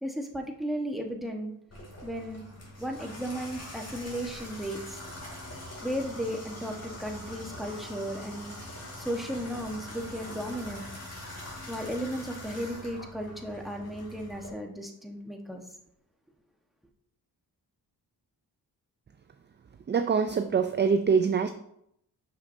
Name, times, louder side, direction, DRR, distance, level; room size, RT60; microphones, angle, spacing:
voice 1, 0.0-1.5 2.0-2.4 2.8-5.0 5.8-8.6 9.0-10.9 11.7-15.6, equal, ahead, 2 dB, 1.1 m, -35 dB
Water tap faucet / Bathtub (filling or washing), 1.7-14.5, left 1 dB, 40° left, 2.6 m, -43 dB
voice 2, 19.9-21.5, right 6 dB, 30° right, 8 dB, 0.4 m, -24 dB
6.6 x 5.6 x 2.6 m, 0.73 s
cardioid pair, 65°, 40 cm